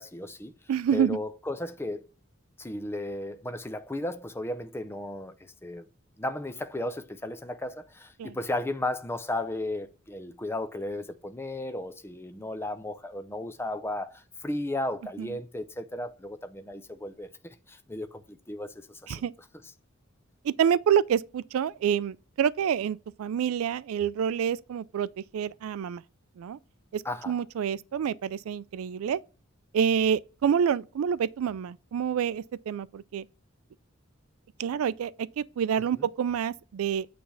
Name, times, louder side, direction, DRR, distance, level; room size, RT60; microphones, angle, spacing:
voice 1, 0.0-0.5 0.9-2.1 2.6-5.3 5.6-5.9 6.2-19.2 27.0-27.4 35.9-36.1, left 1 dB, 10° left, 0.6 m, -35 dB
voice 2, 0.7-1.2 8.2-8.3 15.2-15.3 19.1-19.3 20.4-26.0 26.4-26.6 26.9-29.2 29.7-33.2 34.6-37.1, right 8 dB, 85° right, 0.3 m, -27 dB
8.7 x 3.3 x 5.5 m
head